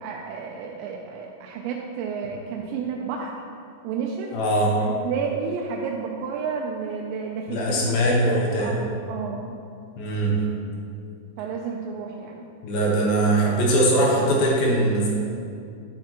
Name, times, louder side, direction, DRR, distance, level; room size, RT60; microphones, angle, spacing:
voice 1, 0.0-3.3 3.8-4.3 4.8-9.5 11.4-12.4, right 6 dB, 85° right, 0 dB, 2.8 m, -31 dB
voice 2, 4.3-4.7 7.5-8.7 10.0-10.4 12.6-15.1, right 1 dB, 70° left, -3 dB, 2.5 m, -21 dB
9.8 x 7.4 x 2.9 m, 2.4 s
omnidirectional pair, 5.0 m